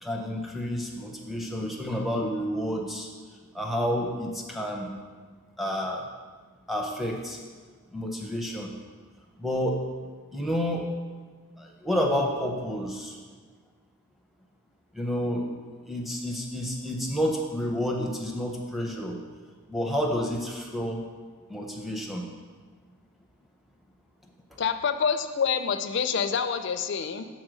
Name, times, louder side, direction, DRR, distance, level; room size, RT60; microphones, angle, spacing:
voice 1, 0.0-3.1 3.5-4.9 5.6-6.1 6.7-7.4 7.9-8.7 9.4-9.8 10.3-10.9 11.6-13.2 14.9-15.5 15.8-19.2 19.7-21.0 21.5-22.2, equal, ahead, -1 dB, 0.6 m, -29 dB
voice 2, 24.6-27.2, left 6 dB, 55° left, 9 dB, 0.4 m, -27 dB
6.4 x 4.2 x 6.1 m, 1.5 s
head